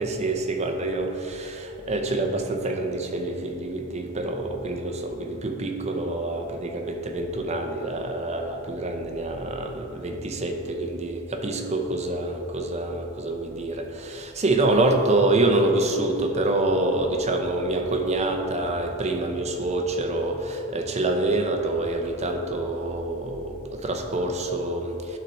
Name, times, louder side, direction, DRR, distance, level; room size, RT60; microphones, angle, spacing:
voice 1, 0.0-25.2, right 2 dB, 30° right, 4 dB, 0.7 m, -26 dB
12.0 x 4.0 x 4.4 m, 3.0 s
head